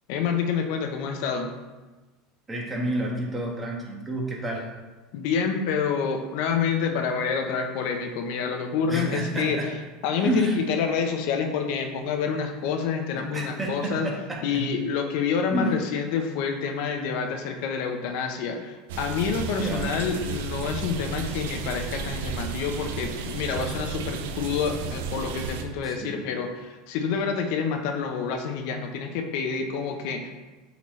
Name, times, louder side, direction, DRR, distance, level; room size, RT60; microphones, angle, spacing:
voice 1, 0.1-1.5 5.1-9.7 10.0-14.1 14.4-30.3, left 6 dB, 65° left, 5 dB, 0.8 m, -28 dB
voice 2, 2.5-4.7 8.9-9.7 10.2-10.6 13.3-14.7 15.5-15.8 19.6-19.9 25.8-26.2, right 1 dB, 15° right, -1 dB, 1.5 m, -29 dB
sound 1, 18.9-25.6, right 5 dB, 85° right, 0.6 m, -33 dB
8.2 x 4.1 x 3.2 m, 1.2 s
supercardioid pair, 120°, 0 cm